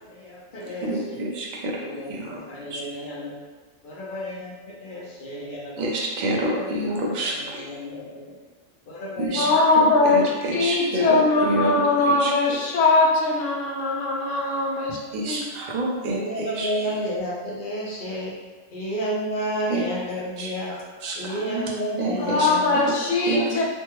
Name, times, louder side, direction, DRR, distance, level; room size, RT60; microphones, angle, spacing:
voice 1, 0.0-1.2 1.8-3.4 3.8-5.9 6.6-8.4 8.9-9.6 9.9-10.1 16.0-18.3 18.7-20.7 21.1-22.7, equal, 45° left, -6 dB, 0.8 m, -32 dB
voice 2, 0.8-1.8 2.1-2.4 2.7-2.8 5.8-7.7 9.2-11.9 12.2-12.3 15.1-16.7 19.7-19.9 20.4-20.5 21.0-21.7 22.0-22.5 23.3-23.5, right 1 dB, 55° right, -2 dB, 0.5 m, -27 dB
voice 3, 9.3-10.2 10.5-15.0 15.3-15.4 15.9-16.0 22.2-23.6, left 3 dB, 80° left, -2 dB, 1.0 m, -21 dB
3.2 x 2.2 x 2.9 m, 1.2 s
omnidirectional pair, 1.3 m